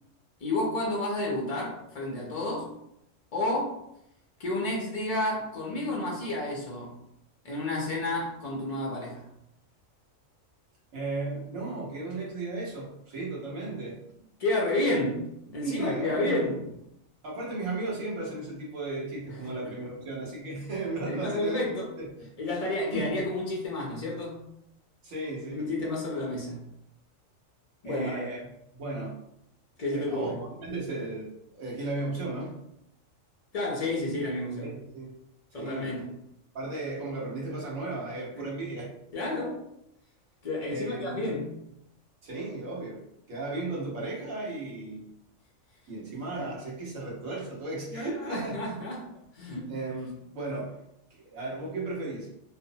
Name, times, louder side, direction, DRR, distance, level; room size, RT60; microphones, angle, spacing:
voice 1, 0.4-2.7 3.3-3.8 4.4-6.9 7.4-9.3 14.4-16.6 19.6-19.7 21.1-21.9 22.4-24.4 25.5-26.6 27.8-28.2 29.8-30.4 33.5-34.7 35.5-36.1 38.4-38.5 39.1-39.6 40.4-41.5 46.4-46.5 47.9-49.1 49.3-49.7, left 2 dB, 60° left, -3 dB, 0.3 m, -30 dB
voice 2, 10.9-14.0 15.6-16.6 17.2-21.6 22.0-22.6 22.9-23.1 25.0-25.7 27.8-28.5 28.7-29.1 29.9-31.3 31.5-32.6 34.6-35.1 35.5-36.0 36.5-38.9 40.7-41.3 42.2-43.0 43.3-45.0 45.9-48.6 49.7-50.8 51.2-52.3, right 2 dB, 75° right, -4 dB, 1.4 m, -35 dB
3.0 x 2.0 x 2.7 m, 0.79 s
omnidirectional pair, 1.4 m